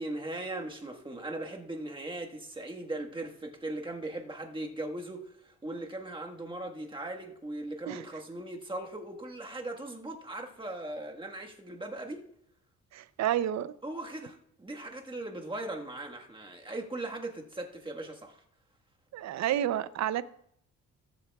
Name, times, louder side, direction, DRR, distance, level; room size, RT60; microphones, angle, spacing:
voice 1, 0.0-12.2 13.8-18.4, right 2 dB, 15° right, 1.5 m, -39 dB
voice 2, 12.9-13.7 19.1-20.2, right 11 dB, 65° right, 0.6 m, -30 dB
20.5 x 7.6 x 2.3 m
cardioid pair, 90°, 30 cm